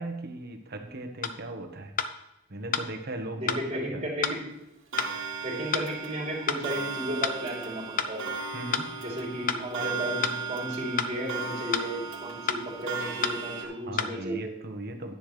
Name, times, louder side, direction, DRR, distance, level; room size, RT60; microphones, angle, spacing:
voice 1, 0.0-1.9 2.5-4.1 8.5-8.9 13.6-15.1, right 2 dB, 55° right, 5 dB, 1.3 m, -38 dB
sound 1, 1.2-1.4 2.0-2.1 2.7-2.9 3.5-3.6 4.2-4.4 5.0-5.1 5.7-5.9 6.5-6.6 7.2-7.4 8.0-8.1 8.7-8.9 9.5-9.6 10.2-10.4 11.0-11.1 11.7-11.9 12.5-12.6 13.2-13.4 14.0-14.1, left 6 dB, 45° left, 0.6 m, -28 dB
voice 2, 3.3-4.4 5.4-8.2 9.0-14.5, equal, 35° right, -2 dB, 3.3 m, -34 dB
Clock, 4.9-13.7, right 5 dB, 75° right, 1.8 m, -36 dB
11.0 x 9.8 x 3.3 m, 0.92 s
head